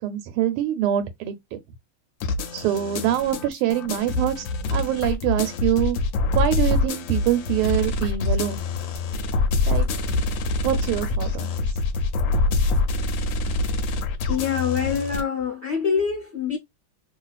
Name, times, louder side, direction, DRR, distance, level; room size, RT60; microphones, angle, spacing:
voice 1, 0.0-1.6 2.5-6.0 6.3-8.6 9.7-9.9 10.6-11.7, right 11 dB, 85° right, 1.5 m, -24 dB
sound 1, 2.2-15.2, left 3 dB, 75° left, 1.2 m, -25 dB
voice 2, 14.3-16.6, left 6 dB, 60° left, 0.7 m, -25 dB
3.0 x 2.7 x 2.3 m
omnidirectional pair, 2.3 m